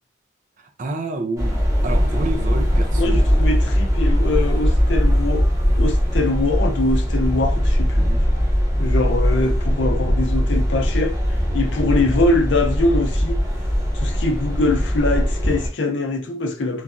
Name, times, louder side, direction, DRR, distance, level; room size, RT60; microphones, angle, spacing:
voice 1, 0.6-3.3 8.0-8.3, right 2 dB, 45° right, 0.4 m, -29 dB
sound 1, 1.4-15.7, equal, 15° right, 0.8 m, -20 dB
voice 2, 2.9-5.5 5.8-8.1 8.8-11.2 11.5-13.4 13.9-16.8, left 2 dB, 75° left, 0.6 m, -23 dB
3.1 x 2.2 x 2.5 m
head